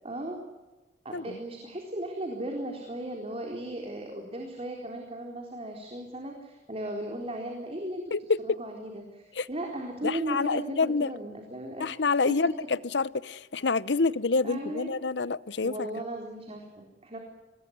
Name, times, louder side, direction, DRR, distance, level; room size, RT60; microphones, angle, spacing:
voice 1, 0.0-0.4 1.0-8.1 8.4-11.9 12.3-12.4 14.4-15.0 15.6-17.2, right 1 dB, 35° right, 4.0 m, -36 dB
voice 2, 8.1-8.6 9.4-9.5 10.0-11.1 11.8-15.9, left 4 dB, 85° left, 0.8 m, -27 dB
25.5 x 20.5 x 9.5 m
head